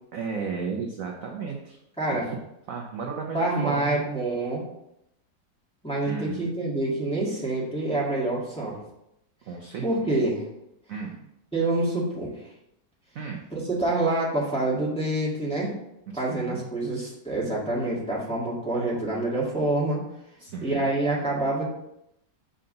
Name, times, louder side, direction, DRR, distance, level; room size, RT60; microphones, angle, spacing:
voice 1, 0.1-1.8 2.1-2.2 2.7-4.0 6.1-6.5 9.5-9.8 10.9-11.2 13.1-13.5 16.1-16.6 20.4-20.9, right 5 dB, 60° right, 1 dB, 0.9 m, -34 dB
voice 2, 3.3-4.6 5.8-8.8 9.8-10.4 11.5-12.3 13.5-15.7 16.1-20.0 20.6-21.7, right 2 dB, 5° left, -6 dB, 1.5 m, -26 dB
5.6 x 3.8 x 5.2 m, 0.82 s
omnidirectional pair, 1.9 m